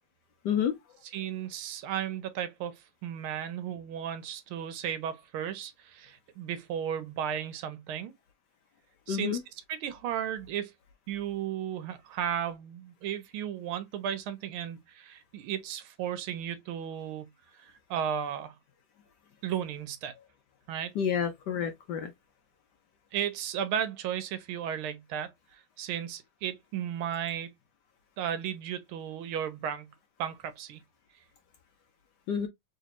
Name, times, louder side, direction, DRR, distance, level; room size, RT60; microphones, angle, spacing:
voice 1, 1.1-8.1 9.1-9.4 9.7-10.7 11.1-17.3 17.6-18.5 19.4-20.1 20.7-20.9 23.1-27.5 28.2-29.9 30.2-30.8, right 9 dB, 85° right, 1.6 m, -34 dB
voice 2, 9.1-9.4 21.0-22.1 32.3-32.5, left 8 dB, 70° left, 1.1 m, -29 dB
3.4 x 3.2 x 2.8 m
omnidirectional pair, 2.3 m